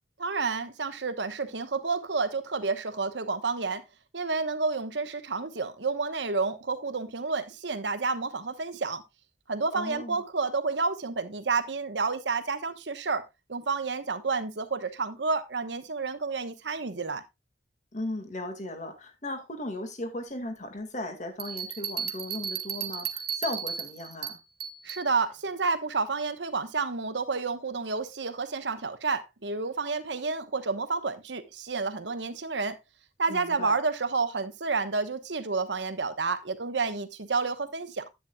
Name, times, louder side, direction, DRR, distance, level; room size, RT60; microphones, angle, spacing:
voice 1, 0.2-3.8 4.1-9.0 9.5-13.2 13.5-17.2 24.8-32.8 33.2-38.1, right 4 dB, 90° right, 1.1 m, -30 dB
voice 2, 9.7-10.2 17.9-24.4 33.3-33.8, left 1 dB, 40° left, 2.0 m, -36 dB
sound 1, 21.4-25.1, right 8 dB, 55° right, 1.3 m, -35 dB
10.5 x 9.0 x 2.3 m
head